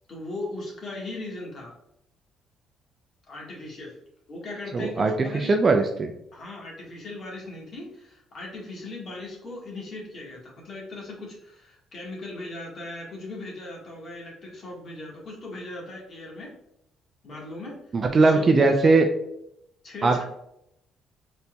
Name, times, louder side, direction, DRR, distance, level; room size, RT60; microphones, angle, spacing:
voice 1, 0.1-1.8 3.3-4.0 4.3-5.5 6.3-16.5 17.2-17.8 18.1-18.7 19.8-20.2, left 2 dB, 45° left, -2 dB, 1.5 m, -38 dB
voice 2, 4.7-6.1 17.9-19.1 20.0-20.2, right 3 dB, 35° right, 4 dB, 0.4 m, -20 dB
4.2 x 4.0 x 2.3 m, 0.78 s
cardioid pair, 120°, 0 cm